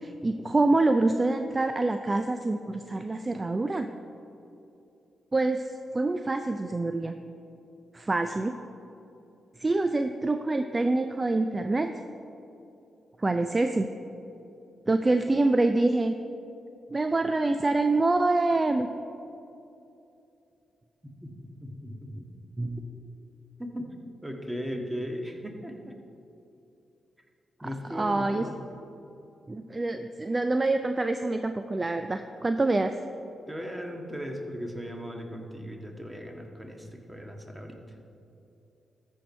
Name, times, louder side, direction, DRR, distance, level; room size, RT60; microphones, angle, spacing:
voice 1, 0.0-3.9 5.3-7.1 7.9-8.5 9.6-11.9 13.2-13.9 14.9-16.1 16.9-18.9 22.6-22.9 27.6-28.5 29.5-32.9, right 2 dB, 30° right, 8 dB, 0.4 m, -26 dB
voice 2, 21.2-22.3 23.6-23.9 24.2-25.7 27.6-28.6 33.5-37.8, equal, 10° right, 2 dB, 1.6 m, -37 dB
13.5 x 4.6 x 5.4 m, 2.7 s
supercardioid pair, 40°, 0 cm